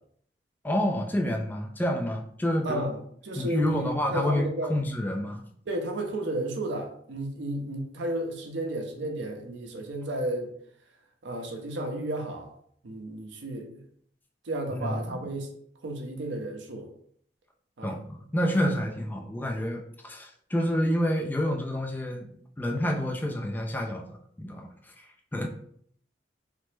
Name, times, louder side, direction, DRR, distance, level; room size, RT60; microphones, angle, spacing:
voice 1, 0.6-2.9 3.4-5.4 14.7-15.3 17.8-25.1 25.3-25.5, equal, 10° left, 2 dB, 0.3 m, -29 dB
voice 2, 3.2-4.7 5.7-10.5 11.2-12.5 12.8-13.8 14.5-15.5 15.8-16.9 17.8-17.9, right 1 dB, 80° right, 3 dB, 0.6 m, -32 dB
3.2 x 2.0 x 3.1 m, 0.63 s
head